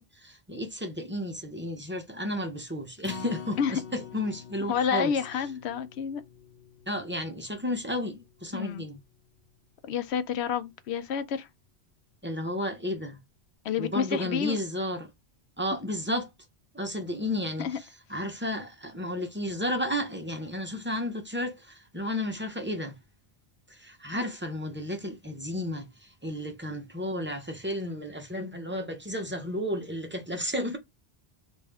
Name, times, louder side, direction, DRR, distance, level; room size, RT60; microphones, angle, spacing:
voice 1, 0.0-5.2 6.9-9.0 12.2-13.2 13.8-15.1 15.6-16.3 16.7-23.0 23.7-30.8, left 1 dB, 15° right, 0.4 m, -33 dB
Acoustic guitar, 3.0-9.3 9.7-9.8 10.3-10.4, left 6 dB, 50° left, 0.7 m, -46 dB
voice 2, 4.7-6.2 8.5-8.9 9.8-11.5 13.6-14.6 17.6-17.8, left 7 dB, 90° left, 0.8 m, -29 dB
3.3 x 2.6 x 3.4 m
omnidirectional pair, 1.1 m